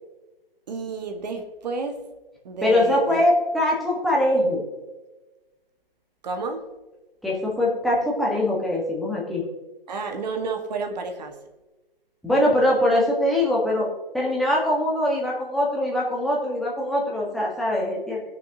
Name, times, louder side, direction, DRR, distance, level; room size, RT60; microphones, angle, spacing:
voice 1, 0.7-2.0 2.4-3.2 6.2-6.6 9.9-11.4, right 3 dB, 45° right, 5 dB, 1.7 m, -30 dB
voice 2, 2.6-4.6 7.2-9.4 12.2-18.2, left 1 dB, ahead, -4 dB, 1.4 m, -22 dB
19.5 x 6.8 x 2.9 m, 1.2 s
figure-of-eight pair, 140°, 29 cm